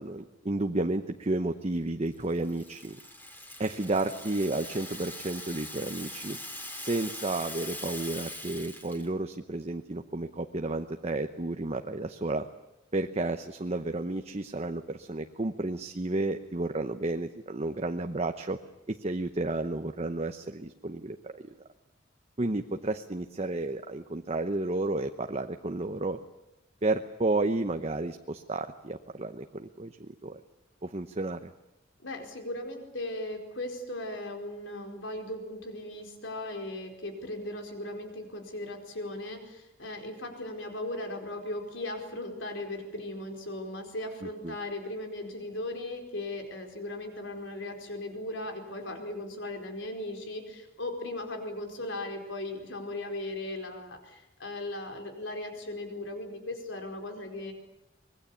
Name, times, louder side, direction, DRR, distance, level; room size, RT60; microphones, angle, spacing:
voice 1, 0.0-3.0 3.6-6.4 6.8-12.5 12.9-18.6 18.9-21.4 22.4-26.2 26.8-30.4 30.8-31.5 44.4-44.6, right 2 dB, 35° right, 6 dB, 0.9 m, -32 dB
Rattle (instrument), 2.1-9.1, left 1 dB, 10° left, 2.9 m, -42 dB
voice 2, 32.0-57.5, left 1 dB, 75° left, 4 dB, 4.7 m, -37 dB
25.0 x 21.0 x 8.5 m, 0.91 s
head